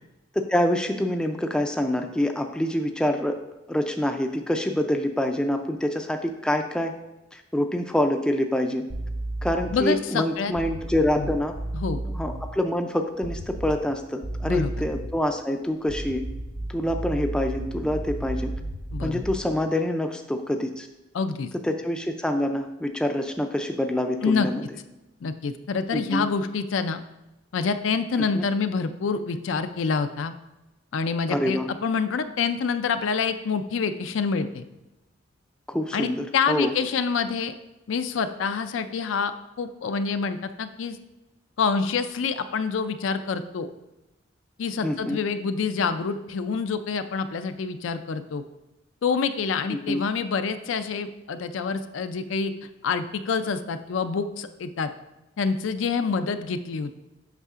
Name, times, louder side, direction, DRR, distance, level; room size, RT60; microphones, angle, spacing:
voice 1, 0.4-3.4 3.7-6.9 7.3-8.9 9.4-11.6 12.0-16.2 16.7-18.5 19.0-20.9 21.6-24.6 25.9-26.2 28.3-28.5 31.3-31.7 35.7-36.7 44.8-45.2 49.7-50.0, left 1 dB, 5° left, 4 dB, 0.3 m, -26 dB
sound 1, 8.9-9.9 10.5-12.4 13.2-13.9 14.2-15.2 15.8-19.5, right 1 dB, 70° right, 1.3 m, -33 dB
voice 2, 9.7-10.5 11.2-11.3 11.7-12.0 14.4-14.8 18.9-19.2 21.1-21.5 24.2-24.5 25.2-27.0 27.5-30.3 30.9-34.6 35.9-37.6 37.9-39.3 39.6-41.0 41.6-43.7 44.6-48.4 49.0-52.5 52.8-54.9 55.4-57.0, left 5 dB, 75° left, 9 dB, 0.4 m, -27 dB
8.1 x 5.6 x 2.4 m, 1.0 s
head